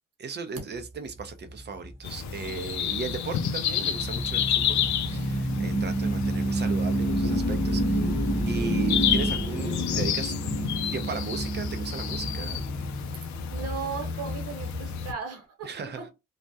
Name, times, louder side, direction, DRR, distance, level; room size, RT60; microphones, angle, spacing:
voice 1, 0.2-8.0 8.5-10.3 10.9-12.7 15.6-16.0, right 5 dB, 35° right, 0.5 m, -37 dB
sound 1, 0.8-14.9, right 1 dB, 5° right, 0.9 m, -30 dB
sound 2, 2.0-15.1, left 8 dB, 65° left, 0.5 m, -30 dB
voice 2, 13.1-16.1, right 5 dB, 55° right, 1.1 m, -37 dB
2.3 x 2.1 x 2.6 m
cardioid pair, 90°, 30 cm